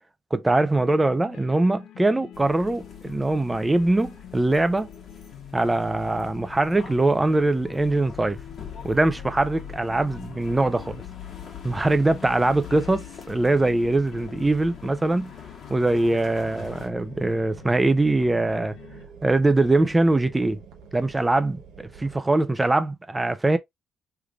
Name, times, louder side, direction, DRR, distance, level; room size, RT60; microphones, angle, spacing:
voice 1, 0.3-4.9 5.5-8.4 8.8-11.0 11.6-15.3 15.7-18.8 19.2-20.6 20.9-23.6, right 2 dB, 15° right, 0.5 m, -22 dB
sound 1, 0.8-19.0, left 10 dB, 90° left, 0.6 m, -45 dB
sound 2, 2.3-16.9, left 8 dB, 60° left, 1.4 m, -43 dB
sound 3, 16.6-22.2, right 6 dB, 90° right, 0.8 m, -46 dB
3.6 x 3.3 x 2.3 m
cardioid pair, 90°, 0 cm